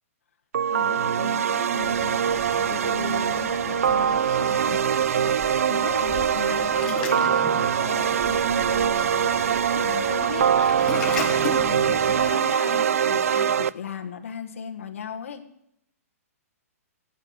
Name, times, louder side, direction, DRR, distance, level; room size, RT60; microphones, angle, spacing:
sound 1, 0.5-13.7, right 8 dB, 65° right, 0.4 m, -23 dB
voice 1, 0.7-15.5, left 7 dB, 60° left, 3 dB, 1.5 m, -38 dB
Waves surf, 1.8-12.3, left 5 dB, 10° left, 1.1 m, -38 dB
sound 2, 5.0-11.0, right 3 dB, 20° right, 1.6 m, -41 dB
11.5 x 8.1 x 9.6 m, 0.76 s
hypercardioid pair, 180°, 8 cm